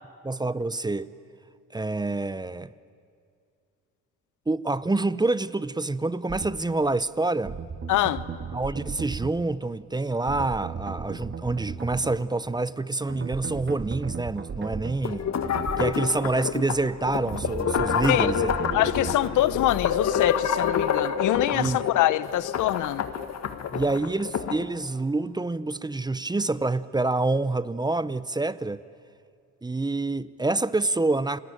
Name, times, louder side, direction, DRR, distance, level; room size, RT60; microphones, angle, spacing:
voice 1, 0.2-1.1 1.7-2.7 4.5-7.6 8.5-15.3 15.8-18.5 21.5-21.8 23.7-28.8 29.6-31.4, right 2 dB, 15° right, 0.6 m, -27 dB
sound 1, 6.3-6.5 7.5-9.4 10.3-12.1 13.1-15.0 15.4-16.0 17.3-19.2, right 5 dB, 40° right, 1.9 m, -35 dB
voice 2, 7.9-8.2 18.1-18.3 18.7-23.1, left 14 dB, 80° left, 0.9 m, -24 dB
sound 2, 15.0-24.6, left 7 dB, 60° left, 1.7 m, -28 dB
29.5 x 20.0 x 9.0 m
cardioid pair, 90°, 30 cm